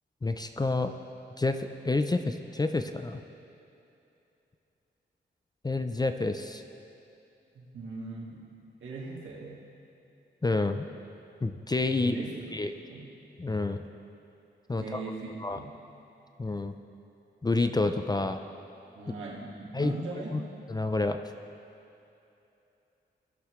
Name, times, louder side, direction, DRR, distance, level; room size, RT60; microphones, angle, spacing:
voice 1, 0.2-0.9 1.4-3.2 5.6-6.6 10.4-10.9 11.4-12.2 12.5-12.7 13.4-13.8 14.7-15.0 15.4-15.6 16.4-16.7 17.4-18.4 19.7-19.9 20.3-20.4 20.7-21.2, left 2 dB, 20° left, 7 dB, 0.5 m, -28 dB
voice 2, 7.6-8.5 8.8-9.6 12.0-12.6 12.8-13.1 14.7-15.7 19.0-20.4, right 3 dB, 85° right, -5 dB, 1.9 m, -40 dB
17.0 x 6.6 x 3.2 m, 2.8 s
cardioid pair, 55°, 19 cm